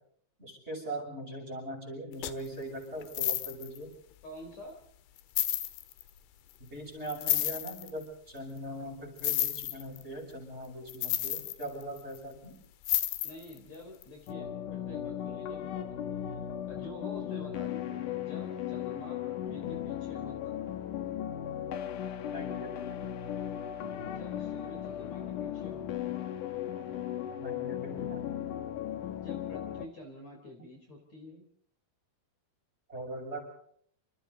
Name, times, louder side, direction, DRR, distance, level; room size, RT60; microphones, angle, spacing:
voice 1, 0.4-3.9 6.6-12.6 22.3-23.0 27.4-28.3 32.9-33.5, right 1 dB, 15° right, 2 dB, 6.7 m, -41 dB
sound 1, 2.2-2.5 3.0-3.8 4.5-4.6 5.2-6.0 7.1-7.9 9.2-10.0 10.9-12.2 12.8-13.6 14.0-14.1, left 14 dB, 85° left, 3.6 m, -31 dB
voice 2, 4.2-4.8 13.2-20.6 24.0-26.2 29.2-31.5, left 1 dB, 40° left, 2 dB, 4.6 m, -48 dB
sound 2, 14.3-29.9, left 10 dB, 65° left, 2.3 m, -37 dB
28.0 x 27.0 x 4.0 m, 0.64 s
omnidirectional pair, 5.1 m